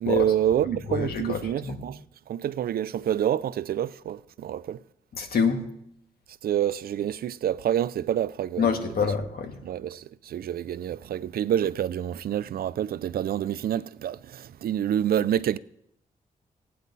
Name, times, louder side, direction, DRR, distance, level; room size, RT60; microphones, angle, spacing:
voice 1, 0.0-2.0 2.3-4.8 6.4-8.7 9.6-15.6, right 10 dB, 75° right, 0.5 m, -27 dB
voice 2, 0.9-1.8 5.1-5.6 8.6-9.6, left 5 dB, 75° left, 1.8 m, -26 dB
15.0 x 9.4 x 4.1 m
cardioid pair, 65°, 16 cm